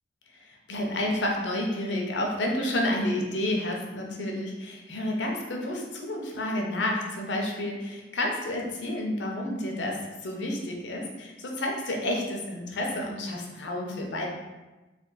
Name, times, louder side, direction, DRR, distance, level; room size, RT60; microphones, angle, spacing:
voice 1, 0.4-14.3, left 1 dB, 85° left, 0 dB, 0.7 m, -30 dB
3.3 x 2.3 x 3.9 m, 1.1 s
head